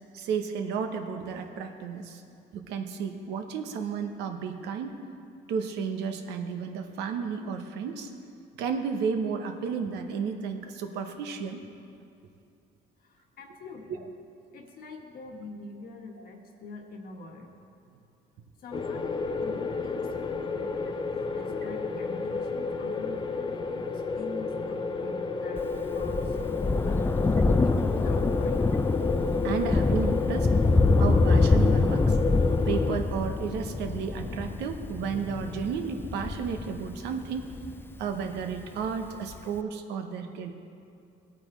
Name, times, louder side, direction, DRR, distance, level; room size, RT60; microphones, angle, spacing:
voice 1, 0.1-2.2 2.5-4.9 5.5-8.1 8.6-11.6 13.9-14.0 29.4-30.5 31.0-32.2 32.6-37.5 38.0-40.5, right 6 dB, 85° right, 6 dB, 1.0 m, -32 dB
voice 2, 13.0-14.0 14.5-17.5 18.6-20.8 21.3-27.2 27.6-28.7, left 3 dB, 60° left, 2 dB, 1.5 m, -45 dB
sound 1, 18.7-33.0, left 4 dB, 30° left, 0.7 m, -31 dB
Thunder, 25.6-38.4 39.3-39.4, left 3 dB, 15° left, 0.3 m, -25 dB
17.5 x 8.6 x 3.2 m, 2.5 s
cardioid pair, 110°, 17 cm